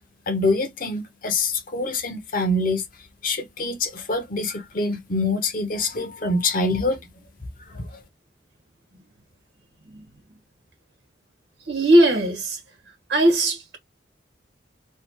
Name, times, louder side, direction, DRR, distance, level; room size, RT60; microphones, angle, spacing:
voice 1, 0.3-2.8 3.2-7.0 7.7-8.0, left 2 dB, 45° left, 0.8 m, -25 dB
voice 2, 11.7-12.6 13.1-13.8, right 1 dB, 65° right, 1.5 m, -19 dB
3.3 x 2.4 x 3.0 m
head